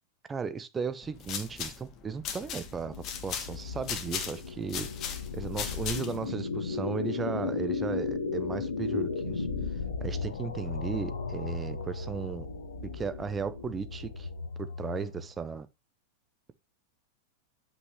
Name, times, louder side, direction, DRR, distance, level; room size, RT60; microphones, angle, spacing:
voice 1, 0.3-4.9 5.3-9.5 10.0-12.5 12.9-14.3 14.8-15.7, right 5 dB, 20° right, 0.7 m, -35 dB
sound 1, 1.0-6.3, left 7 dB, 35° left, 1.4 m, -38 dB
sound 2, 2.2-15.4, left 4 dB, 70° left, 1.3 m, -35 dB
8.1 x 5.8 x 3.2 m
figure-of-eight pair, 90°, 0 cm